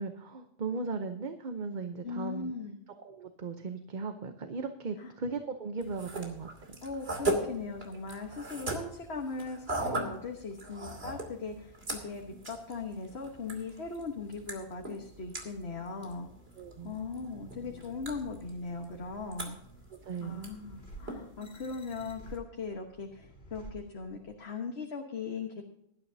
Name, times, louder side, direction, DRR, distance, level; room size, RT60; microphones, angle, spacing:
voice 1, 0.0-2.5 3.0-6.5 16.6-16.9 20.0-20.4, right 4 dB, 50° right, 7 dB, 1.0 m, -37 dB
voice 2, 2.0-2.8 5.0-5.1 6.8-16.3 16.8-19.6 20.2-25.6, left 4 dB, 85° left, 2 dB, 1.6 m, -39 dB
sound 1, 5.8-22.4, right 2 dB, 75° right, 2.9 m, -40 dB
sound 2, 16.1-24.5, right 1 dB, 70° left, 2.6 m, -53 dB
18.0 x 12.0 x 2.8 m, 0.76 s
omnidirectional pair, 1.0 m